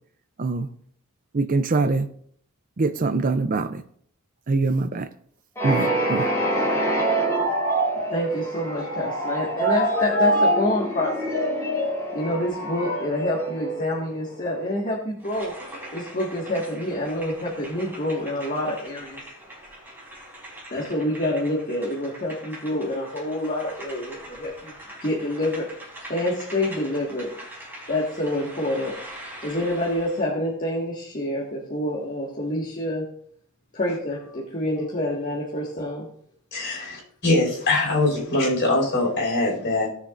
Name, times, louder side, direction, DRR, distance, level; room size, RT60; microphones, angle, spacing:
voice 1, 1.3-2.1 2.8-3.8 4.5-5.1 5.6-6.3, right 3 dB, 40° right, 11 dB, 0.5 m, -23 dB
sound 1, 5.6-14.3, right 1 dB, 15° left, 2.9 m, -25 dB
voice 2, 8.0-11.4 12.1-15.5 15.9-19.2 20.7-24.7 25.0-25.7 26.1-27.3 27.9-29.0 29.4-33.1 33.7-36.1 36.7-36.9, left 1 dB, 35° left, -4 dB, 1.7 m, -27 dB
sound 2, 15.2-30.3, right 1 dB, 10° right, 3.7 m, -42 dB
voice 3, 36.5-39.9, left 2 dB, 50° left, -3 dB, 5.0 m, -22 dB
18.5 x 6.9 x 2.5 m, 0.63 s
head